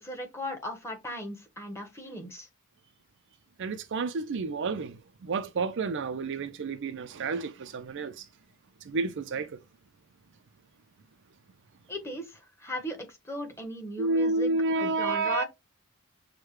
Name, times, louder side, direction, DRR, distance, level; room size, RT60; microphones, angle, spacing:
voice 1, 0.0-2.5 11.9-14.5 14.8-15.4, equal, 10° left, 1.2 m, -37 dB
voice 2, 3.6-8.3 8.8-9.6 14.0-15.4, right 3 dB, 60° right, 0.5 m, -30 dB
6.3 x 2.2 x 3.1 m
head